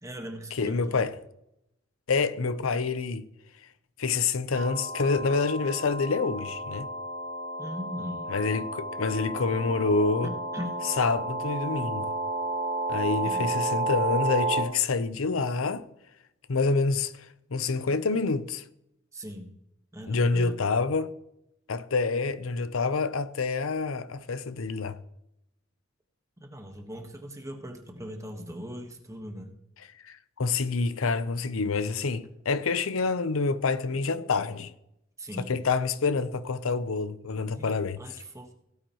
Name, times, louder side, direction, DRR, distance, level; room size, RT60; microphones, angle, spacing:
voice 1, 0.0-1.1 7.6-8.3 10.2-10.7 13.2-13.5 19.1-19.5 19.9-20.6 26.4-29.6 35.2-35.6 37.5-38.5, equal, 15° right, 1.3 m, -40 dB
voice 2, 0.6-1.1 2.1-3.3 4.0-6.9 8.3-10.3 11.0-12.1 12.9-15.8 16.5-17.1 17.5-18.6 20.1-21.1 21.7-25.0 30.1-34.7 35.5-38.0, left 4 dB, 90° left, 0.7 m, -27 dB
sound 1, 4.5-14.6, right 2 dB, 65° right, 2.9 m, -32 dB
17.5 x 9.0 x 3.0 m
head